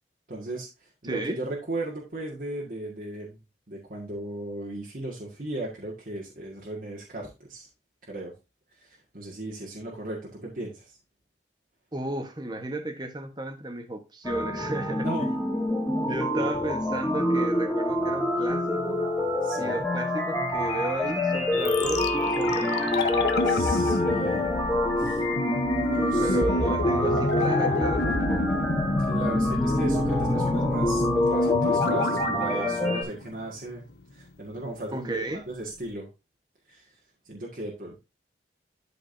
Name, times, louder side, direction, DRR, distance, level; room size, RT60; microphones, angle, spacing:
voice 1, 0.3-3.4 3.7-7.7 8.1-8.3 8.7-10.9 15.0-15.3 16.1-16.4 19.4-19.9 23.4-24.5 25.0-25.2 25.7-26.4 29.1-33.8 34.1-36.1 36.7-36.9 37.2-38.0, right 1 dB, 50° right, -3 dB, 1.8 m, -36 dB
voice 2, 1.0-1.4 11.9-15.1 16.0-19.0 19.6-23.0 26.2-28.6 30.3-30.4 34.9-35.4, right 1 dB, 25° right, 6 dB, 1.2 m, -33 dB
sound 1, 14.2-33.0, left 1 dB, 10° left, 2.8 m, -26 dB
sound 2, 21.6-33.6 33.9-34.0, left 2 dB, 75° left, 1.0 m, -28 dB
12.0 x 5.0 x 2.7 m, 0.27 s
head